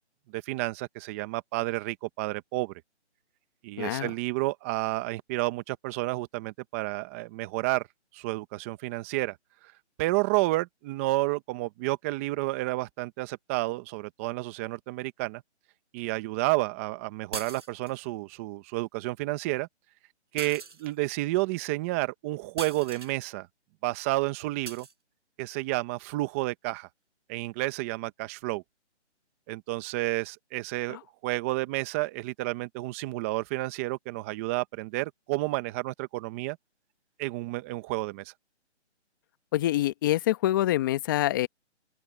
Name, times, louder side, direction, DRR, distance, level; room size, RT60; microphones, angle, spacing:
voice 1, 0.3-2.7 3.6-7.8 8.1-9.4 10.0-15.4 15.9-19.7 20.3-23.5 23.8-24.9 25.4-26.9 27.3-28.6 29.5-36.6 37.2-38.3, right 20 dB, 10° right, 1.1 m, -30 dB
voice 2, 3.8-4.1 30.9-31.0 39.5-41.5, left 14 dB, 20° left, 1.1 m, -26 dB
sound 1, 17.3-18.1 20.4-21.2 22.6-23.2 24.6-24.9, right 4 dB, 80° right, 6.3 m, -40 dB
open air
hypercardioid pair, 160°, 35 cm